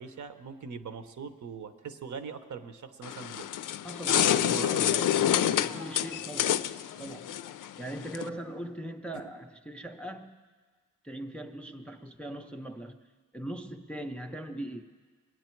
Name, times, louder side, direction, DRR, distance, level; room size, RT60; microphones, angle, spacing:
voice 1, 0.0-3.6 4.1-5.4 7.0-7.2, right 5 dB, 60° right, 0.8 m, -41 dB
sound 1, 3.0-8.3, left 11 dB, 70° left, 0.4 m, -28 dB
voice 2, 3.8-6.6 7.0-7.4 7.7-10.4 11.0-13.0 13.3-14.8, right 1 dB, 5° left, 0.5 m, -40 dB
22.5 x 9.1 x 4.5 m
wide cardioid pair, 145°, 33 cm